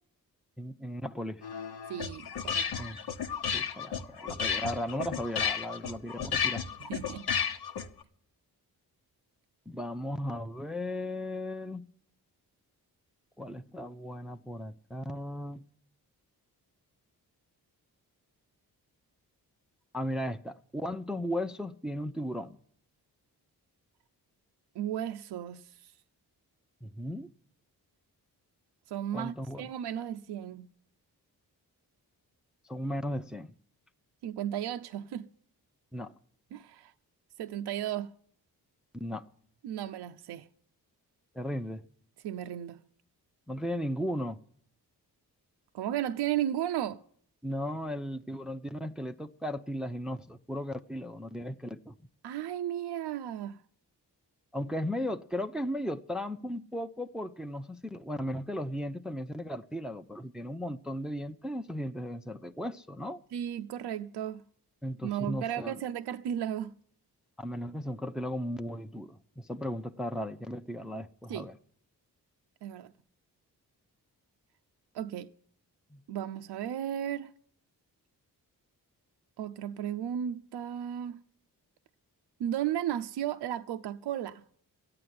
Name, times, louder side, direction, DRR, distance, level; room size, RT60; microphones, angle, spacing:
voice 1, 0.6-1.4 2.8-3.0 3.5-6.6 9.7-11.9 13.4-15.6 19.9-22.6 26.8-27.3 29.1-29.7 32.6-33.5 35.9-36.1 38.9-39.3 41.3-41.8 43.5-44.4 47.4-51.9 54.5-63.2 64.8-65.8 67.4-71.6 75.9-76.0, equal, ahead, 0.6 m, -36 dB
sound 1, 1.4-8.0, left 7 dB, 70° left, 1.1 m, -33 dB
voice 2, 1.9-2.9 6.9-7.3 24.7-25.9 28.9-30.7 34.2-35.3 36.5-36.9 37.4-38.1 39.6-40.5 42.2-42.8 45.7-47.0 52.2-53.6 63.3-64.4 65.0-66.7 71.3-71.5 72.6-72.9 74.9-75.3 76.1-77.3 79.4-81.2 82.4-84.4, right 10 dB, 80° right, 0.6 m, -34 dB
13.5 x 8.7 x 9.5 m
supercardioid pair, 50°, 40 cm